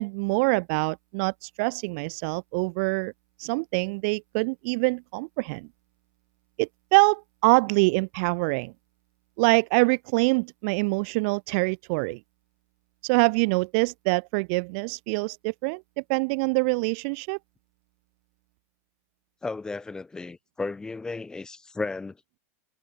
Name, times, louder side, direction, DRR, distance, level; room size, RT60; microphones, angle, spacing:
voice 1, 0.0-3.1 3.4-5.7 6.6-8.7 9.4-12.2 13.0-15.8 16.1-17.4, right 32 dB, 45° right, 0.8 m, -25 dB
voice 2, 19.4-22.2, left 3 dB, 10° left, 3.1 m, -34 dB
supercardioid pair, 160°, 9 cm